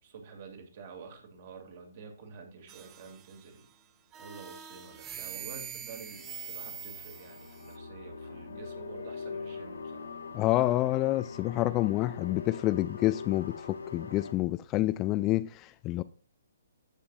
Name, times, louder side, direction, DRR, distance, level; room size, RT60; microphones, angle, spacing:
voice 1, 0.0-3.7 4.1-10.2, right 5 dB, 45° right, 2.4 m, -48 dB
sound 1, 2.7-3.6 4.1-7.8, right 9 dB, 20° right, 0.8 m, -44 dB
sound 2, 5.7-14.3, left 5 dB, 80° left, 1.5 m, -43 dB
voice 2, 10.3-16.0, left 16 dB, 25° left, 0.3 m, -28 dB
14.5 x 5.2 x 2.4 m
figure-of-eight pair, 130°, 0 cm